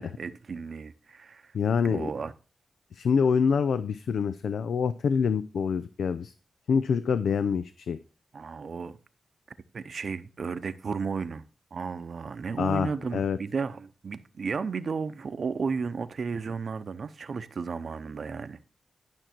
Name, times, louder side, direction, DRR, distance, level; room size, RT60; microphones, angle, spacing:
voice 1, 0.0-1.5 1.8-2.3 8.3-9.0 9.7-11.4 11.7-18.6, right 5 dB, 65° right, 0.7 m, -33 dB
voice 2, 1.5-2.1 2.9-6.3 6.7-8.0 12.6-13.4, left 6 dB, 85° left, 0.4 m, -26 dB
11.5 x 6.1 x 4.4 m
cardioid pair, 65°, 0 cm